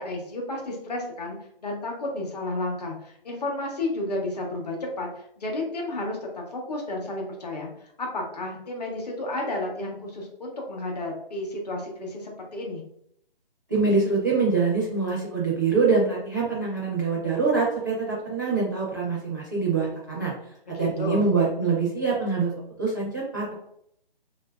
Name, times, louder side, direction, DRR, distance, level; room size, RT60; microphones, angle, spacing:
voice 1, 0.0-7.7 8.0-12.8 20.7-21.3, left 2 dB, 45° left, 0 dB, 0.8 m, -32 dB
voice 2, 13.7-20.3 20.8-22.5 22.8-23.5, right 4 dB, 20° right, -6 dB, 0.4 m, -24 dB
2.9 x 2.6 x 2.2 m, 0.71 s
hypercardioid pair, 160°, 29 cm